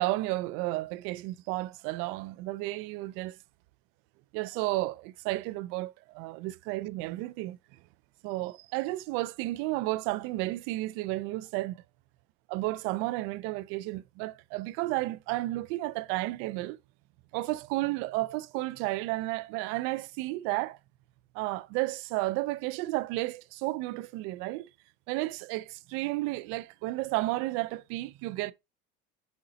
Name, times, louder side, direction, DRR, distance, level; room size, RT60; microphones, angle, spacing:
voice 1, 0.0-3.3 4.3-7.6 8.2-11.8 12.5-16.8 17.3-20.8 21.3-24.7 25.1-28.5, right 19 dB, 75° right, 0.5 m, -32 dB
7.2 x 3.8 x 4.0 m
cardioid pair, 135°, 21 cm